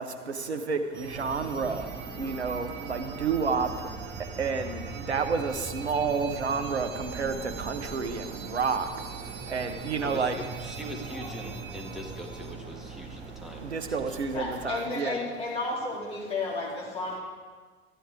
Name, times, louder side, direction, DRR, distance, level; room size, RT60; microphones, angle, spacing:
voice 1, 0.0-10.4 13.0-15.2, right 5 dB, 90° right, 7 dB, 0.7 m, -30 dB
sound 1, 0.9-12.5, right 4 dB, 40° right, 1.1 m, -42 dB
sound 2, 1.1-14.7, right 5 dB, 20° right, 1.4 m, -43 dB
voice 2, 10.0-13.7 14.0-14.2 15.1-15.3, equal, ahead, 0 dB, 1.7 m, -42 dB
voice 3, 14.3-17.2, left 3 dB, 20° left, -5 dB, 2.5 m, -33 dB
13.0 x 9.0 x 3.5 m, 1.5 s
figure-of-eight pair, 70°, 32 cm